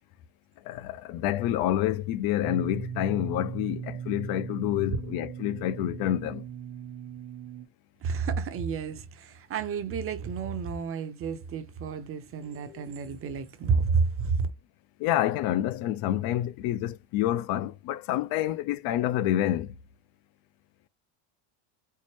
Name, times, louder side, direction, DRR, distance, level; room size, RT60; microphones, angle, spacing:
voice 1, 0.6-6.5 12.4-12.9 15.0-19.8, left 13 dB, 55° left, 0.5 m, -28 dB
sound 1, 2.4-7.7, right 8 dB, 60° right, 1.2 m, -38 dB
voice 2, 8.0-14.5, right 5 dB, 30° right, 0.7 m, -30 dB
4.5 x 2.1 x 3.0 m
supercardioid pair, 130°, 45 cm